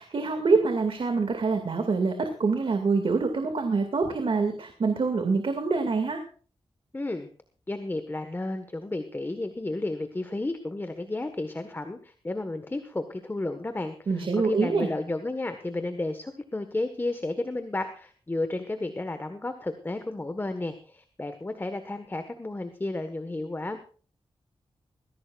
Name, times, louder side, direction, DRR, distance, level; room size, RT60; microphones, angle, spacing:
voice 1, 0.0-6.2 14.1-14.9, right 4 dB, 65° right, 6 dB, 2.3 m, -25 dB
voice 2, 6.9-7.3 7.7-23.8, left 2 dB, 20° left, 8 dB, 1.4 m, -32 dB
21.0 x 16.0 x 2.5 m, 0.41 s
wide cardioid pair, 125°, 10 cm